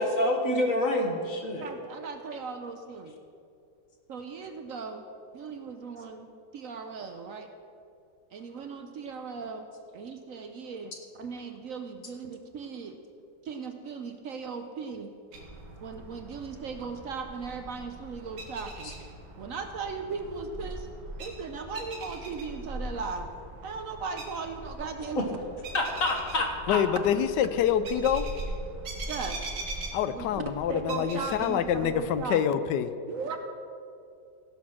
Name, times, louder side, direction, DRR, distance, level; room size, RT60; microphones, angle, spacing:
voice 1, 0.0-1.6 25.7-26.8, left 1 dB, 50° left, 2 dB, 1.7 m, -27 dB
voice 2, 1.6-3.1 4.1-5.0 5.3-7.5 8.3-9.7 9.9-13.0 13.4-15.1 15.8-18.9 19.4-20.9 21.2-23.3 23.6-25.2 29.1-29.4 30.1-30.4 30.7-32.4 33.1-33.4, right 5 dB, 60° right, 6 dB, 1.0 m, -37 dB
sound 1, 15.3-32.2, right 1 dB, 85° right, 2.2 m, -41 dB
voice 3, 26.7-28.3 29.9-32.9, left 9 dB, 85° left, 12 dB, 1.2 m, -26 dB
16.0 x 6.1 x 6.2 m, 2.5 s
omnidirectional pair, 1.8 m